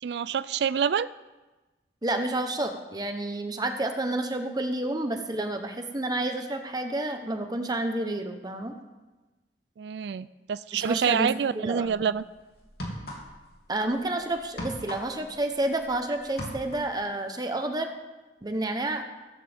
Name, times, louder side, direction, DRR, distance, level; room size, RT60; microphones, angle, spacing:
voice 1, 0.0-1.1 9.8-12.2, right 7 dB, 65° right, 16 dB, 0.3 m, -27 dB
voice 2, 2.0-8.8 10.7-11.3 11.5-12.0 13.7-17.9 18.4-19.1, right 1 dB, 20° right, 5 dB, 1.0 m, -30 dB
sound 1, 11.8-12.0 12.6-13.6 13.8-16.0 16.2-17.0, equal, 60° left, 2.9 m, -38 dB
16.0 x 14.5 x 3.6 m, 1.2 s
head